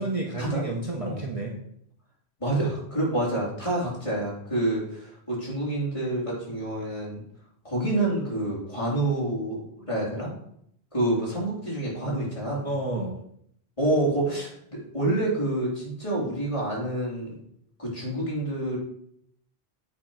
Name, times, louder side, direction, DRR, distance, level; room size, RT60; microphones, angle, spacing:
voice 1, 0.0-1.6 12.6-13.1, right 2 dB, 35° right, -1 dB, 1.0 m, -30 dB
voice 2, 2.4-7.2 7.6-10.3 10.9-12.7 13.8-17.3 17.8-18.8, right 1 dB, 30° left, -6 dB, 3.0 m, -28 dB
8.5 x 3.7 x 5.9 m, 0.71 s
omnidirectional pair, 1.1 m